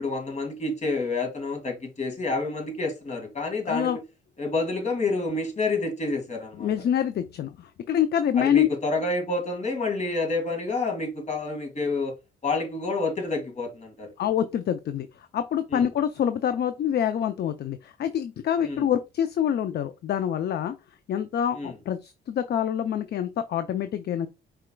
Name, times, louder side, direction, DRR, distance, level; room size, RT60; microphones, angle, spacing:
voice 1, 0.0-3.9 4.4-6.7 8.3-12.1 12.4-14.1 15.7-15.9 18.6-18.8 21.5-21.8, left 3 dB, 35° left, 2.1 m, -28 dB
voice 2, 3.7-4.0 6.6-8.7 14.2-15.1 15.3-20.8 21.1-24.3, left 9 dB, 55° left, 0.5 m, -26 dB
4.9 x 4.4 x 2.3 m
cardioid pair, 90°, 20 cm